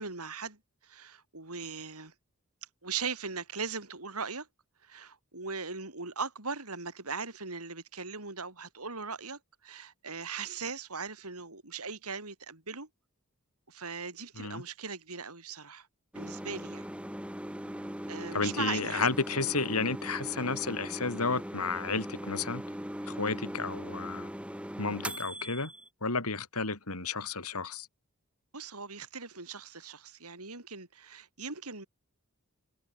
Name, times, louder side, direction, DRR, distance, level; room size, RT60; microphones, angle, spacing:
voice 1, 0.0-2.1 2.8-4.5 4.8-12.9 13.7-15.9 16.2-16.8 18.1-19.1 28.5-31.9, right 5 dB, 90° right, 5.5 m, -39 dB
sound 1, 16.1-25.9, equal, 5° right, 3.8 m, -40 dB
voice 2, 18.3-22.6 23.1-24.3 24.8-25.7 26.0-27.9, left 4 dB, 85° left, 4.1 m, -32 dB
head